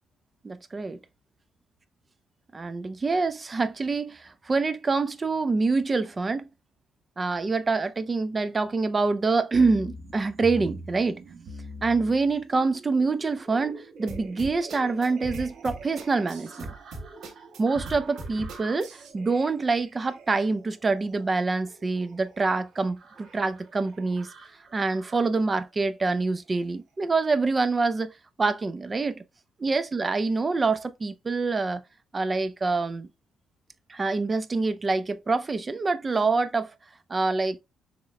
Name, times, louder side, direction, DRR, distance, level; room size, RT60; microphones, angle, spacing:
voice 1, 0.4-1.0 2.5-6.5 7.2-11.2 11.8-16.7 17.6-24.3 24.7-28.1 28.4-29.2 29.6-31.8 32.1-33.1 33.9-36.7 37.1-37.6, right 3 dB, 30° right, 0.6 m, -26 dB
sound 1, 9.5-25.4 26.1-26.7 27.2-27.3, right 2 dB, 60° right, 1.5 m, -45 dB
sound 2, 14.1-19.1, right 2 dB, 75° right, 1.5 m, -39 dB
6.3 x 3.0 x 2.2 m
cardioid pair, 90°, 0 cm